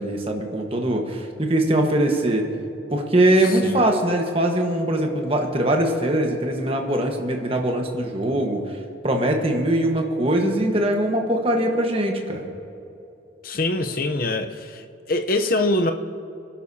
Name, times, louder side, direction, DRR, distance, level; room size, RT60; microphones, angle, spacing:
voice 1, 0.0-2.5 2.9-8.6 9.0-12.4, right 1 dB, 30° right, 1.3 m, -22 dB
voice 2, 13.4-14.8 15.1-15.9, left 2 dB, 50° left, 0.8 m, -23 dB
26.0 x 11.5 x 2.8 m
head